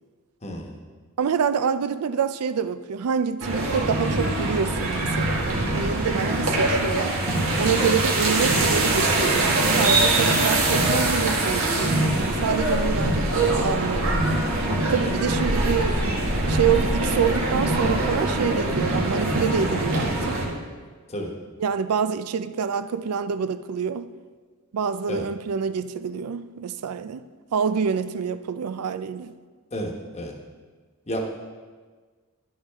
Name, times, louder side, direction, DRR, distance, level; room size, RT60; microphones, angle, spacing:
voice 1, 0.4-0.8 7.8-8.0 15.0-15.2 21.1-21.3 25.1-25.2 29.7-30.3 31.1-31.2, equal, 30° left, 1.1 m, -31 dB
voice 2, 1.2-7.2 7.6-14.2 14.9-16.0 16.5-20.4 21.6-24.1 24.7-27.2 27.5-29.3, right 7 dB, 90° right, 0.4 m, -26 dB
sound 1, 3.4-20.5, right 2 dB, 65° right, 1.7 m, -23 dB
11.0 x 8.5 x 3.5 m
head